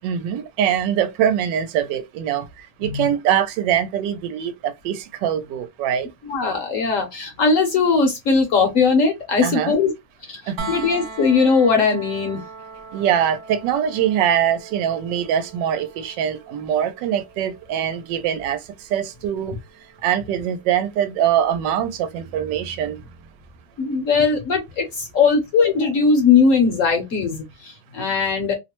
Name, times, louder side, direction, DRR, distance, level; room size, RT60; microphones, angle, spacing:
voice 1, 0.0-2.5 2.8-6.1 9.4-9.7 10.5-10.7 12.9-18.6 18.9-19.5 20.0-23.0, right 9 dB, 85° right, 1.2 m, -23 dB
voice 2, 6.2-9.9 10.2-12.4 23.8-28.5, left 5 dB, 60° left, 0.9 m, -19 dB
sound 1, 10.6-22.4 24.3-24.4, right 4 dB, 55° right, 1.0 m, -41 dB
3.0 x 2.1 x 2.9 m
omnidirectional pair, 1.9 m